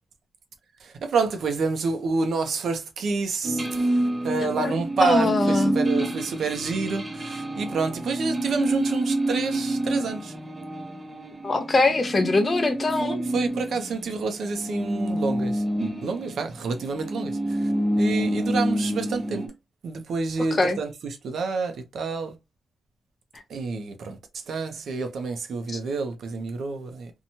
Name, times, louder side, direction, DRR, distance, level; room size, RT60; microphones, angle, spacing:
voice 1, 0.8-10.3 13.0-15.6 16.0-17.6 18.0-19.4 19.8-22.3 23.5-24.2 24.5-27.1, right 4 dB, 70° right, 0.6 m, -28 dB
sound 1, 3.4-14.1 14.3-19.5, right 1 dB, 25° right, 0.6 m, -28 dB
voice 2, 4.5-5.7 11.4-13.2 20.5-20.8, left 3 dB, 30° left, 0.5 m, -23 dB
2.7 x 2.2 x 2.8 m
wide cardioid pair, 135°, 0 cm